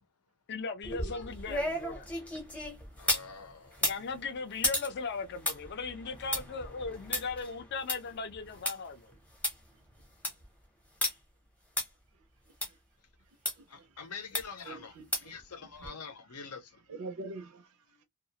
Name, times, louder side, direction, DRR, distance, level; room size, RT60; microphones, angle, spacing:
voice 1, 0.5-2.1 3.8-9.1, left 4 dB, 50° left, 0.4 m, -38 dB
sound 1, 0.8-3.3 3.7-8.7 9.1-9.2 9.4-9.5 10.0-10.4 11.0-11.1 11.8-11.9 12.6-12.7 13.4-13.5 14.3-14.7 15.1-15.4 15.8-15.9, left 1 dB, 5° left, 0.6 m, -34 dB
voice 2, 3.0-3.9 13.7-16.8, left 5 dB, 85° left, 0.7 m, -45 dB
voice 3, 12.5-12.8 13.5-14.0 14.7-15.3 15.6-16.0 16.9-18.0, right 3 dB, 75° right, 0.5 m, -46 dB
2.3 x 2.1 x 2.7 m
head